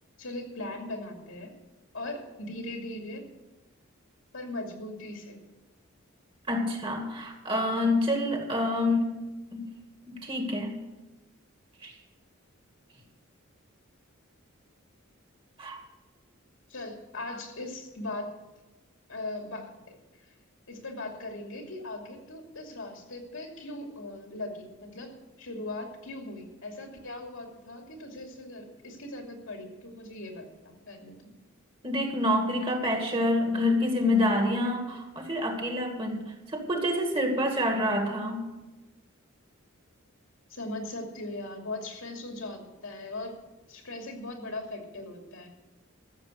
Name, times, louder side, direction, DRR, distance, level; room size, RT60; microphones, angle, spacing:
voice 1, 0.2-1.5 1.9-3.3 4.3-5.4 16.7-18.3 19.1-20.0 20.7-31.3 40.5-43.4 43.7-45.5, left 2 dB, 75° left, 2 dB, 2.7 m, -39 dB
voice 2, 6.5-9.2 9.5-9.7 10.1-10.8 11.8-11.9 15.6-15.8 31.8-38.5, left 1 dB, 25° right, 3 dB, 2.1 m, -27 dB
14.0 x 7.2 x 8.1 m, 1.1 s
head